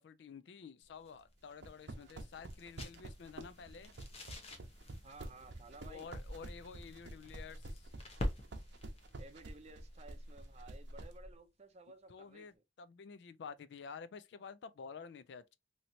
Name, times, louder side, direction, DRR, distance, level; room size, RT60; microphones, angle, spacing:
voice 1, 0.0-3.9 5.9-7.9 12.1-15.6, left 5 dB, 70° left, 0.4 m, -50 dB
sound 1, 0.8-11.5, equal, 35° left, 0.8 m, -47 dB
sound 2, 1.5-11.1, right 2 dB, 75° right, 0.7 m, -48 dB
voice 2, 5.0-6.1 9.2-12.6, right 3 dB, 35° right, 0.5 m, -56 dB
3.1 x 2.8 x 2.6 m
head